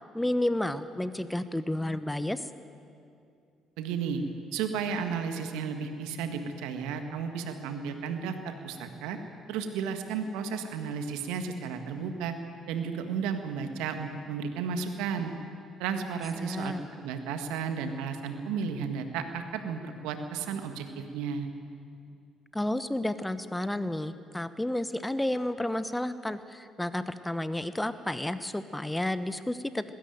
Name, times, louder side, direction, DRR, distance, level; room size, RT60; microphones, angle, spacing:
voice 1, 0.1-2.5 16.4-16.8 22.5-29.8, left 1 dB, 10° left, 13 dB, 1.1 m, -31 dB
voice 2, 3.8-4.2 4.5-9.2 9.5-12.4 12.7-15.3 15.8-20.9 21.1-21.5, right 6 dB, 75° right, 7 dB, 1.7 m, -33 dB
20.0 x 16.0 x 9.3 m, 2.5 s
hypercardioid pair, 50°, 0 cm